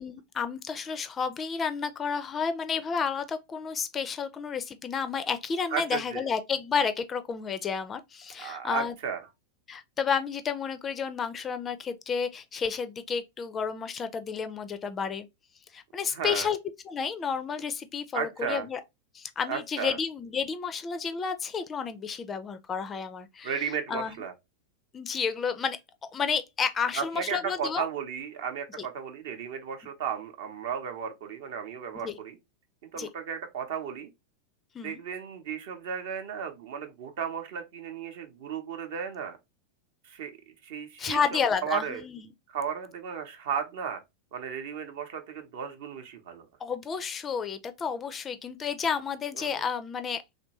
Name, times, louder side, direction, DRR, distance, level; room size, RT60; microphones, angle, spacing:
voice 1, 0.0-8.9 9.7-15.3 15.7-16.6 16.9-18.8 19.1-23.5 23.9-24.1 24.9-25.8 26.1-27.9 32.0-32.1 33.0-33.1 34.7-35.0 41.0-42.2 46.6-50.2, left 6 dB, 20° left, 0.4 m, -31 dB
voice 2, 5.7-6.2 8.4-9.3 16.1-16.5 18.1-18.7 19.5-20.0 23.4-24.3 26.9-32.4 32.8-34.1 34.8-39.4 40.0-40.4 40.6-42.0 42.5-44.0 44.3-46.4 49.3-49.6, right 7 dB, 55° right, 0.7 m, -34 dB
3.1 x 2.6 x 2.9 m
figure-of-eight pair, 90°, 0 cm